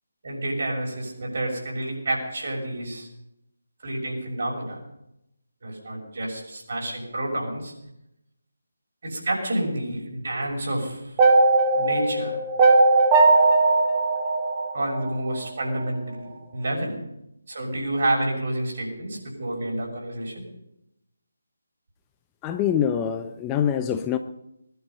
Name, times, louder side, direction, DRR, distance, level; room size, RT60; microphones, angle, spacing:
voice 1, 0.2-3.1 3.8-4.8 5.6-7.7 9.0-11.1 11.7-12.4 14.7-17.0 17.5-20.4, right 1 dB, 50° right, 0 dB, 6.3 m, -29 dB
sound 1, 11.2-15.4, right 3 dB, 20° right, 1.3 m, -18 dB
voice 2, 22.4-24.2, left 9 dB, 15° left, 8 dB, 0.6 m, -24 dB
20.5 x 11.5 x 5.5 m, 0.85 s
figure-of-eight pair, 155°, 0 cm